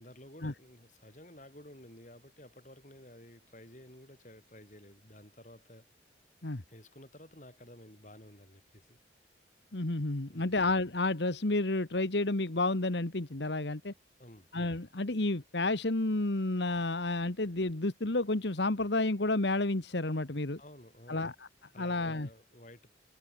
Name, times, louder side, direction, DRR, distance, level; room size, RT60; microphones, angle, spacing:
voice 1, 0.0-5.9 6.7-9.0 10.3-10.6 14.2-14.5 20.6-21.3 21.7-22.9, left 1 dB, 40° left, 7.2 m, -53 dB
voice 2, 9.7-13.9 14.5-20.6 21.1-21.5 21.8-22.3, left 2 dB, 70° left, 1.6 m, -31 dB
head